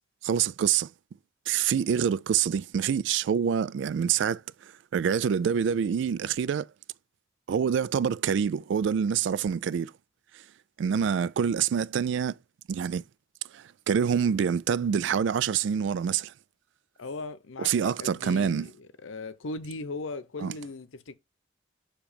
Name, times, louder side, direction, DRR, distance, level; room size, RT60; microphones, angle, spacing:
voice 1, 0.2-0.9 1.5-6.7 7.5-9.9 10.8-12.3 12.7-13.0 13.5-16.3 17.6-18.7 20.4-20.5, right 7 dB, 70° right, 0.3 m, -26 dB
voice 2, 17.0-21.1, left 3 dB, 85° left, 0.7 m, -38 dB
7.0 x 2.9 x 5.0 m
head